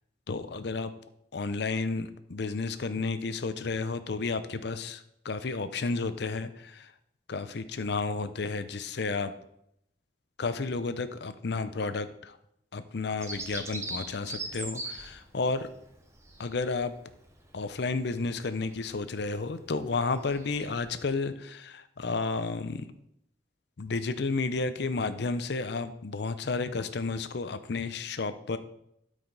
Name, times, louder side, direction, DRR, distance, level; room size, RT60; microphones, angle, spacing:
voice 1, 0.3-0.9 1.3-6.9 7.3-9.3 10.4-12.4 12.7-15.7 16.4-16.9 17.5-22.9 23.8-28.6, left 3 dB, 65° left, 12 dB, 0.6 m, -32 dB
Bird vocalization bird call bird song, 13.2-21.1, right 2 dB, 15° right, 0.9 m, -42 dB
12.5 x 5.0 x 4.0 m, 0.76 s
head